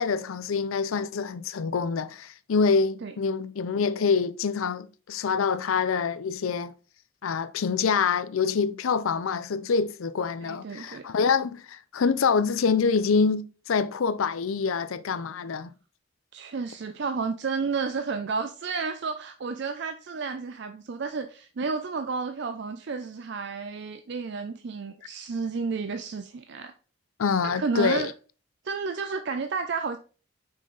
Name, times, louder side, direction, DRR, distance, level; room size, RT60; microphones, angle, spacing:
voice 1, 0.0-6.7 7.2-15.7 27.2-28.1, left 5 dB, 75° left, 0.5 m, -26 dB
voice 2, 10.4-11.1 16.3-26.7 27.4-28.1 28.6-30.0, right 4 dB, 55° right, 0.4 m, -31 dB
5.6 x 4.9 x 3.9 m
head